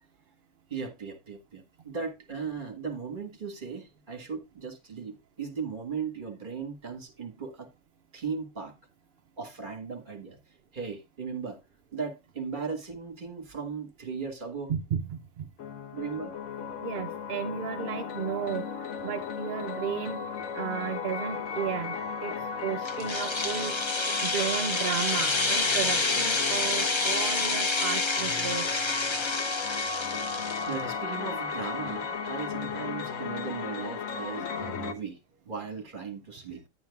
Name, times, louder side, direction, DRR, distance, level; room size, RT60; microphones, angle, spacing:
voice 1, 0.7-7.7 8.1-8.7 9.4-10.4 10.7-11.6 11.9-14.7 15.9-16.3 30.6-35.2 35.5-36.6, right 5 dB, 40° right, 1.5 m, -37 dB
voice 2, 14.7-15.5 16.8-20.2 20.5-22.3 22.6-28.8, right 7 dB, 55° right, 0.7 m, -34 dB
sound 1, 15.6-34.9, left 6 dB, 75° left, 1.3 m, -35 dB
sound 2, 22.9-30.7, left 3 dB, 25° left, 0.7 m, -28 dB
10.5 x 8.9 x 2.3 m
omnidirectional pair, 1.4 m